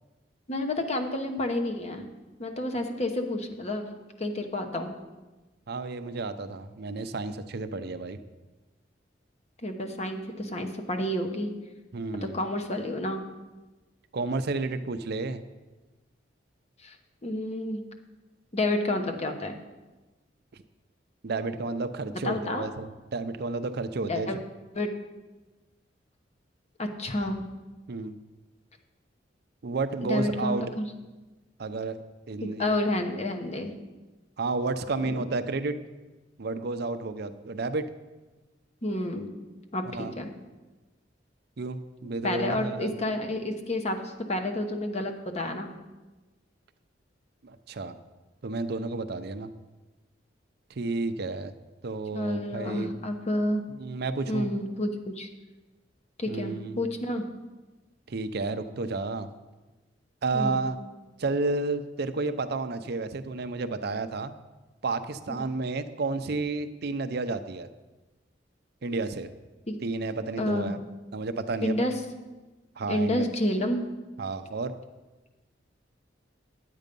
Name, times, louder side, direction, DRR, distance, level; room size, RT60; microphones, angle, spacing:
voice 1, 0.5-2.1 2.4-4.9 9.6-11.5 12.2-13.2 16.8-17.0 17.2-17.8 18.5-19.6 22.2-22.7 24.1-24.4 24.7-25.0 26.8-27.4 30.0-30.9 32.4-33.7 35.0-35.2 38.8-39.3 39.7-40.3 42.2-45.7 52.1-53.6 54.3-55.3 56.2-57.2 60.3-60.7 65.3-65.4 69.7-69.8 70.4-70.7 71.6-72.0 72.9-73.9, left 1 dB, 35° left, 5 dB, 1.1 m, -30 dB
voice 2, 5.7-8.2 11.9-12.4 14.1-15.4 21.2-24.3 27.9-28.2 29.6-30.6 31.6-32.0 32.3-32.7 34.4-35.8 36.4-37.8 39.9-40.1 41.6-42.9 47.4-47.9 48.4-49.5 50.8-51.5 51.8-52.9 53.8-54.5 56.3-56.8 58.1-59.3 60.2-60.8 61.2-64.3 64.8-67.7 68.8-69.3 69.8-70.8 71.1-71.8 72.8-73.3 74.2-74.7, right 3 dB, 60° right, 10 dB, 0.6 m, -31 dB
10.5 x 8.3 x 5.3 m, 1.2 s
head